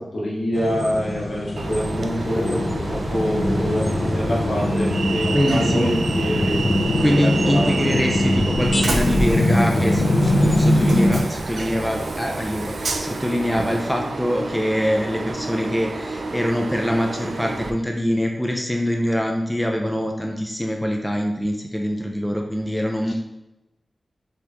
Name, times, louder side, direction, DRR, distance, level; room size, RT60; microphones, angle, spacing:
voice 1, 0.0-6.6 7.1-8.0 23.1-23.2, equal, 65° left, -5 dB, 1.4 m, -26 dB
sound 1, 0.5-11.2, left 1 dB, 40° left, 0.7 m, -22 dB
Train, 1.6-17.7, right 3 dB, 70° right, 0.4 m, -29 dB
voice 2, 5.3-5.9 7.0-23.1, equal, ahead, 1 dB, 0.4 m, -24 dB
5.0 x 3.4 x 3.0 m, 0.98 s
wide cardioid pair, 105°, 0 cm